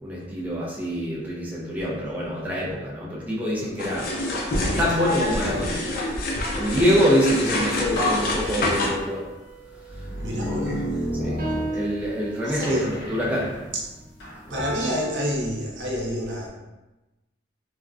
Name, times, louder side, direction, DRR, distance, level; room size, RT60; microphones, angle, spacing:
voice 1, 0.0-4.1 4.8-5.8 6.5-9.2 10.4-10.7 11.2-11.4 11.7-13.5, equal, 10° right, -6 dB, 0.5 m, -25 dB
sound 1, 3.8-8.9, left 1 dB, 55° left, 0.5 m, -26 dB
sound 2, 7.4-7.5 7.9-9.2 9.9-12.2 12.6-14.4, equal, 85° left, 1.0 m, -30 dB
sound 3, 8.4-10.8 11.4-12.9 14.6-15.2, right 2 dB, 50° right, 0.9 m, -35 dB
voice 2, 10.2-11.1 12.4-12.9 13.7-13.8 14.5-16.5, equal, 90° right, -3 dB, 0.7 m, -28 dB
3.5 x 2.1 x 2.5 m, 1.0 s
head